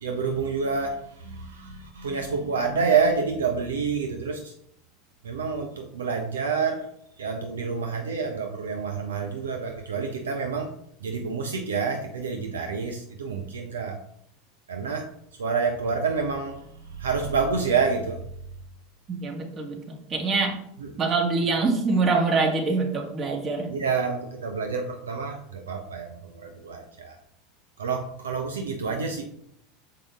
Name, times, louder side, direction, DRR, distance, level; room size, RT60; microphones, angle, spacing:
voice 1, 0.0-4.5 5.2-6.9 7.2-10.7 11.0-14.0 14.7-15.1 15.4-18.2 20.8-21.0 23.7-27.2 27.8-29.2, right 5 dB, 75° right, 4 dB, 0.7 m, -28 dB
voice 2, 19.1-19.8 20.1-20.6 21.0-23.7, right 3 dB, 35° right, 1 dB, 1.9 m, -24 dB
6.7 x 5.1 x 3.5 m, 0.72 s
figure-of-eight pair, 80°, 0 cm